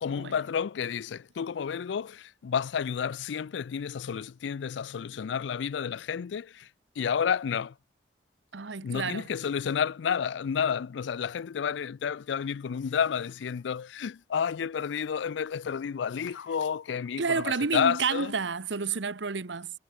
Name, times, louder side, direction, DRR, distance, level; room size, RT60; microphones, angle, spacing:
voice 1, 0.0-6.7 7.0-7.7 8.8-18.3, left 7 dB, 80° left, 0.4 m, -30 dB
voice 2, 8.5-9.3 17.2-19.7, right 5 dB, 85° right, 1.0 m, -30 dB
head